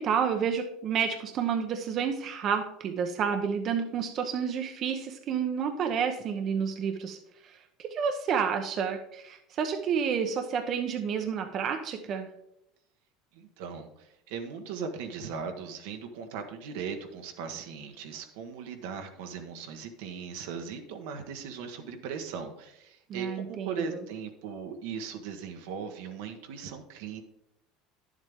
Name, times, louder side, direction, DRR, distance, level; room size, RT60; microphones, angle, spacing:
voice 1, 0.0-7.2 7.4-12.3 23.1-24.0, right 7 dB, 45° right, 5 dB, 0.9 m, -30 dB
voice 2, 13.3-27.2, right 6 dB, 80° right, 5 dB, 1.2 m, -38 dB
10.0 x 7.4 x 3.6 m, 0.79 s
supercardioid pair, 105°, 0 cm